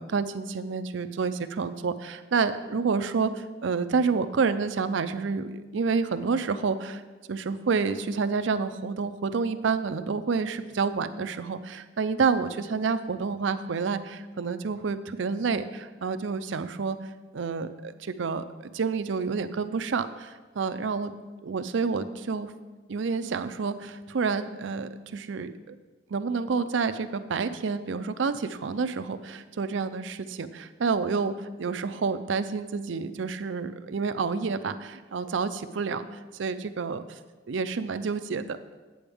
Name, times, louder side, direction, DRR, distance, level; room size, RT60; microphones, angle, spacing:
voice 1, 0.0-7.0 7.3-17.0 17.3-21.1 21.4-22.5 22.9-25.8 26.1-37.0 37.5-38.6, right 5 dB, 70° right, 11 dB, 0.5 m, -29 dB
9.9 x 7.8 x 3.5 m, 1.2 s
head